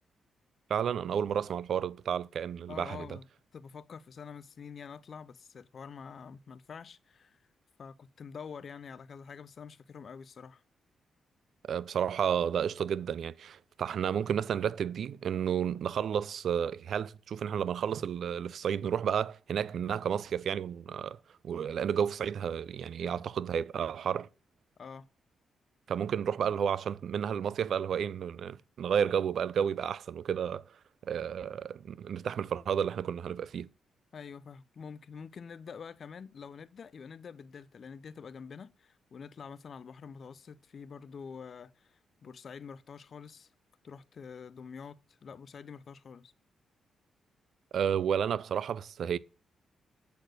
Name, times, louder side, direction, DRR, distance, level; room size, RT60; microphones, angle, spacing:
voice 1, 0.7-3.2 11.7-21.2 21.4-24.3 25.9-30.6 31.0-33.7 47.7-49.2, right 8 dB, 65° right, 0.3 m, -31 dB
voice 2, 2.7-3.3 3.5-7.4 7.8-10.6 23.0-23.1 24.8-25.1 34.1-43.5 43.8-46.3, left 6 dB, 55° left, 0.5 m, -46 dB
8.0 x 4.3 x 6.3 m
cardioid pair, 95°, 0 cm